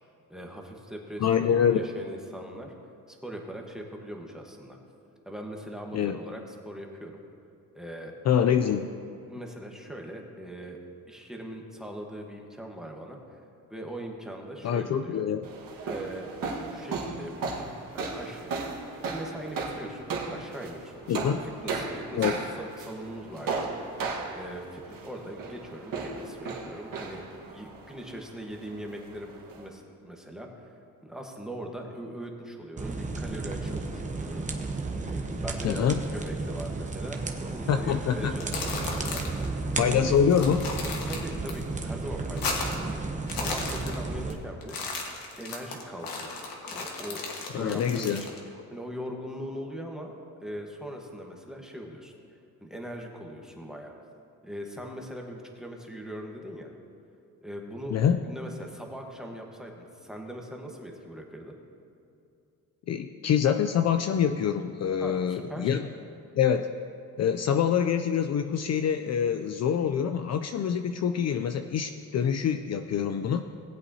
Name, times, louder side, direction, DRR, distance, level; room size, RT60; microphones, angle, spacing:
voice 1, 0.3-1.3 1.7-2.7 3.1-4.8 5.2-7.2 7.7-8.1 9.2-10.8 11.1-13.4 13.7-15.2 15.8-16.3 16.7-18.8 19.1-22.2 22.8-23.7 24.1-30.5 31.0-34.6 35.0-40.2 41.0-44.9 45.4-46.4 46.7-48.3 48.7-50.1 50.4-52.1 52.6-53.9 54.4-56.7 57.4-58.0 58.2-61.5 65.0-65.7, equal, ahead, 0 dB, 1.2 m, -41 dB
voice 2, 1.2-1.9 5.9-6.2 8.3-8.9 14.6-15.5 21.1-21.4 22.1-22.3 35.6-36.0 37.7-38.3 39.8-40.8 47.5-48.2 57.9-58.2 62.9-65.9 66.3-66.7 67.2-73.5, left 8 dB, 50° left, 7 dB, 0.4 m, -25 dB
sound 1, 15.4-29.7, right 4 dB, 65° right, 1.5 m, -36 dB
sound 2, 32.8-44.3, right 3 dB, 20° right, 0.8 m, -33 dB
sound 3, 38.2-39.5 39.7-39.8 40.2-41.5 41.8-42.9 43.2-44.3 44.6-48.4, left 3 dB, 75° left, 1.5 m, -35 dB
18.0 x 8.2 x 2.8 m, 2.6 s
cardioid pair, 120°, 35 cm